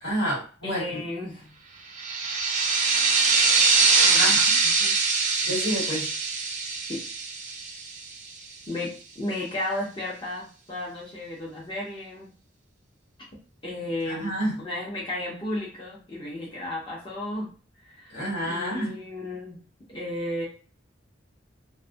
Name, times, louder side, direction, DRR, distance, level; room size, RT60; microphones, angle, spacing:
voice 1, 0.0-1.1 4.1-4.5 5.4-6.1 14.0-14.6 18.1-18.9, equal, 75° left, -5 dB, 1.5 m, -29 dB
voice 2, 0.6-1.5 4.0-4.4 4.8-4.9 6.9-7.0 8.7-12.3 13.6-14.3 14.6-17.5 17.8-19.6 19.9-20.5, left 1 dB, 25° left, -5 dB, 0.6 m, -33 dB
sound 1, 1.9-8.3, right 4 dB, 40° right, 0.4 m, -23 dB
2.4 x 2.1 x 2.5 m, 0.38 s
head